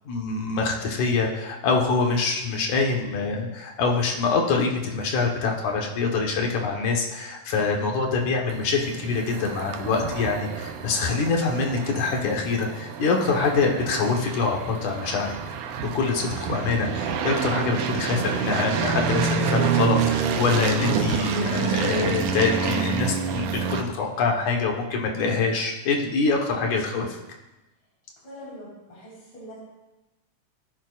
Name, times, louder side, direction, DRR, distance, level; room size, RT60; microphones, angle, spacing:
voice 1, 0.1-15.3 15.9-27.2, left 4 dB, 65° left, 1 dB, 2.7 m, -25 dB
sound 1, 8.5-23.8, right 6 dB, 75° right, 2.3 m, -28 dB
voice 2, 28.2-29.6, equal, 50° left, -9 dB, 5.6 m, -43 dB
18.5 x 10.0 x 2.6 m, 1.0 s
omnidirectional pair, 3.9 m